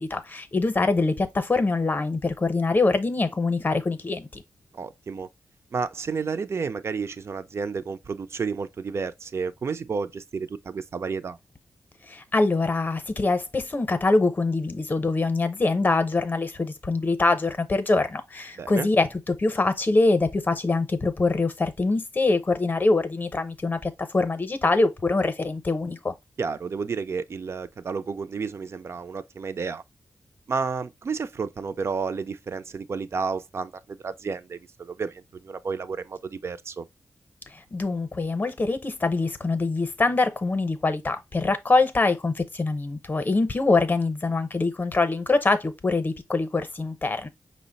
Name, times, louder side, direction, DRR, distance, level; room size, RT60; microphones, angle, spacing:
voice 1, 0.0-4.4 12.1-26.1 37.5-47.3, left 3 dB, 30° left, 0.7 m, -24 dB
voice 2, 4.7-5.3 5.7-11.4 18.6-18.9 26.4-29.8 30.5-36.9, right 5 dB, 45° right, 0.4 m, -31 dB
5.5 x 2.1 x 3.9 m
wide cardioid pair, 105°, 6 cm